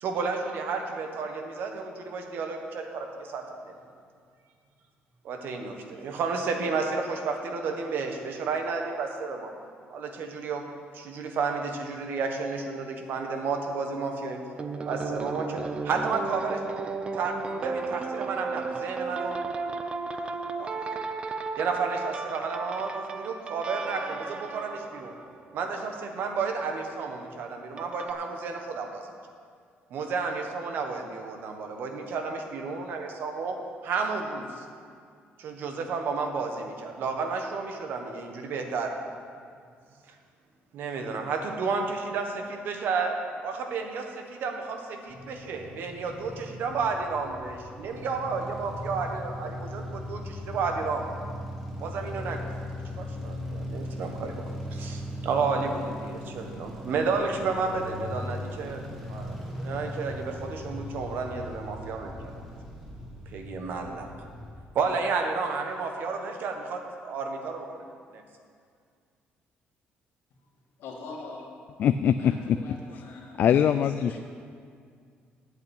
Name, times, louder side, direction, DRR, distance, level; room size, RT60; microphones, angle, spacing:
voice 1, 0.0-3.7 5.2-9.5 9.9-10.6 10.9-14.4 14.8-16.6 17.1-19.4 20.5-20.9 21.6-25.1 25.5-29.0 29.9-33.6 33.8-34.6 35.4-38.9 40.1-40.2 40.7-43.2 43.4-51.1 51.8-52.4 53.0-54.4 54.7-58.8 59.1-62.4 63.3-64.1 64.7-67.8 68.1-68.2, right 4 dB, 65° right, 4 dB, 1.4 m, -32 dB
sound 1, 14.6-26.0 27.8-28.1, right 4 dB, 30° right, 0.6 m, -34 dB
sound 2, 45.1-64.5, left 1 dB, ahead, 1.8 m, -39 dB
voice 2, 70.8-71.5 72.1-73.4 73.8-74.2, left 3 dB, 80° left, -2 dB, 2.5 m, -43 dB
voice 3, 71.8-72.6 73.4-74.2, left 9 dB, 50° left, 10 dB, 0.3 m, -22 dB
8.4 x 8.1 x 8.8 m, 2.2 s
cardioid pair, 150°, 4 cm